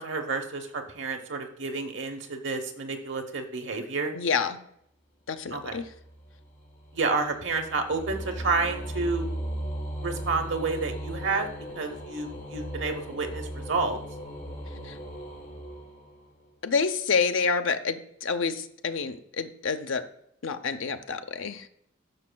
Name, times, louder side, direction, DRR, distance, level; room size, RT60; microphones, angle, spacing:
voice 1, 0.0-4.1 5.5-5.8 6.9-9.3 10.0-11.5 11.7-14.0, right 4 dB, 60° right, 4 dB, 0.9 m, -30 dB
voice 2, 4.1-4.6 5.3-5.9 14.8-15.0 16.6-20.0 20.4-21.7, left 5 dB, 75° left, 9 dB, 0.6 m, -28 dB
sound 1, 5.6-16.5, equal, 45° left, 2.9 m, -38 dB
12.0 x 6.1 x 2.2 m, 0.72 s
head